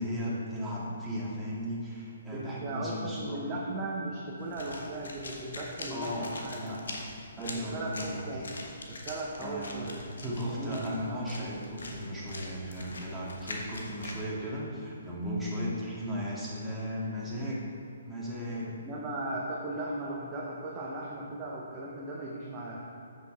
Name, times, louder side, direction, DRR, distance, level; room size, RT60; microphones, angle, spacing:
voice 1, 0.0-3.4 5.9-7.0 7.4-8.5 9.4-9.9 10.2-17.6 18.1-18.8, equal, 5° right, -8 dB, 2.0 m, -36 dB
voice 2, 2.3-6.6 7.4-8.5 8.9-10.0 10.5-10.9 18.7-22.8, right 2 dB, 25° right, -4 dB, 1.0 m, -37 dB
sound 1, 4.4-14.2, left 2 dB, 75° left, 1.3 m, -44 dB
8.0 x 6.9 x 4.5 m, 2.7 s
hypercardioid pair, 140°, 0 cm